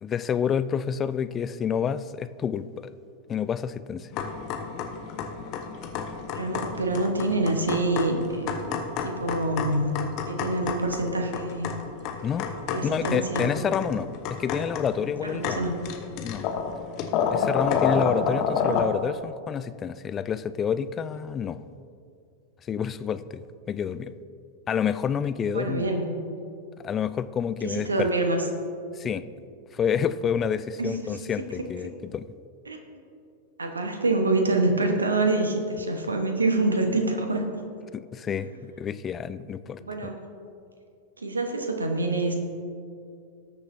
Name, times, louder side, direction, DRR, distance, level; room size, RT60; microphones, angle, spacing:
voice 1, 0.0-2.7 3.3-4.1 12.2-12.5 12.8-15.7 16.2-16.4 17.3-21.6 22.7-24.1 24.7-25.9 26.8-28.1 29.0-29.2 29.7-32.3 37.9-39.8, left 7 dB, 25° left, 14 dB, 0.4 m, -28 dB
sound 1, 4.1-18.8, left 6 dB, 40° left, 1.0 m, -30 dB
voice 2, 6.3-9.8 10.3-11.7 12.7-13.5 15.2-15.8 18.6-18.8 25.5-26.2 27.6-28.5 30.8-31.5 32.7-33.0 33.6-37.4 38.3-38.4 39.8-40.2 41.2-42.4, right 2 dB, 80° right, 4 dB, 1.2 m, -26 dB
19.0 x 6.7 x 2.7 m, 2.4 s
figure-of-eight pair, 95°, 0 cm